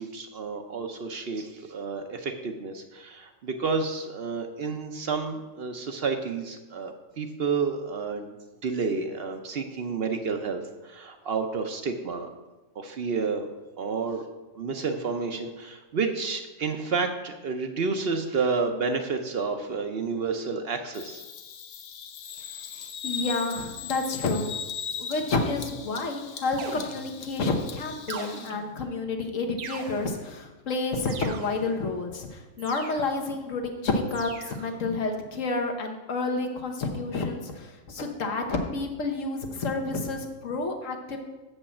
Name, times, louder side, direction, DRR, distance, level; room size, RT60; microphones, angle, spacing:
voice 1, 0.0-8.3 8.6-12.3 12.8-13.5 13.8-14.2 14.5-21.2, right 4 dB, 55° right, 6 dB, 0.8 m, -30 dB
Bird vocalization bird call bird song, 20.9-28.5, left 7 dB, 90° left, 1.2 m, -39 dB
voice 2, 22.7-24.6 25.0-41.2, left 3 dB, 70° left, 4 dB, 1.4 m, -30 dB
sound 1, 26.6-27.4 28.1-28.9 29.6-30.3 31.1-31.8 32.6-33.3 34.1-34.8, right 5 dB, 80° right, 1.2 m, -41 dB
7.4 x 5.4 x 7.1 m, 1.2 s
omnidirectional pair, 1.4 m